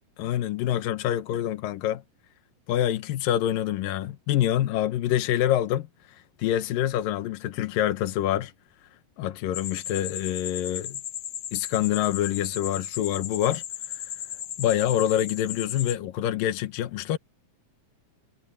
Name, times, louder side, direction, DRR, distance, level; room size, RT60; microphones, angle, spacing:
voice 1, 0.2-2.0 2.7-8.5 9.2-11.0 11.5-13.6 13.9-14.0 14.6-17.2, left 12 dB, 85° left, 2.8 m, -26 dB
sound 1, 9.5-15.9, left 10 dB, 60° left, 1.8 m, -36 dB
omnidirectional pair, 3.9 m